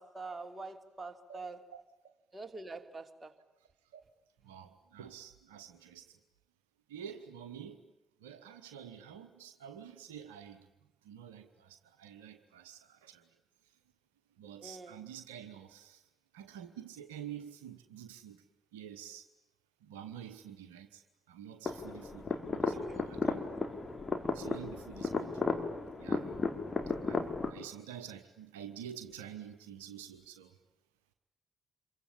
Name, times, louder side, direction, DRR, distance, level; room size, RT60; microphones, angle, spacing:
voice 1, 0.0-1.6 2.3-3.3 14.6-15.0 22.7-23.0, right 3 dB, 25° right, 3.4 m, -45 dB
voice 2, 4.4-6.0 6.9-7.8 8.2-10.7 11.0-13.2 14.4-16.0 16.3-18.4 18.7-19.2 19.8-21.0 21.3-23.4 24.3-25.3 26.0-26.3 27.0-30.5, right 9 dB, 80° right, 1.2 m, -48 dB
sound 1, 21.7-27.5, left 3 dB, 35° left, 4.4 m, -34 dB
27.0 x 24.0 x 8.9 m
figure-of-eight pair, 40°, 0 cm